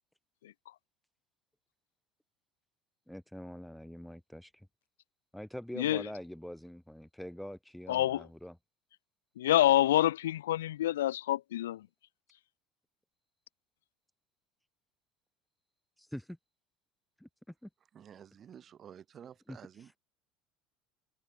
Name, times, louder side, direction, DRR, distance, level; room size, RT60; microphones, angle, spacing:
voice 1, 3.1-4.7 5.3-8.6 16.0-16.4 17.2-17.3 17.6-17.7 19.5-19.9, equal, 5° left, 0.5 m, -44 dB
voice 2, 5.8-6.1 7.9-8.3 9.4-11.9, left 13 dB, 75° left, 0.3 m, -27 dB
voice 3, 17.9-20.0, right 9 dB, 40° right, 2.8 m, -52 dB
hypercardioid pair, 70°, 0 cm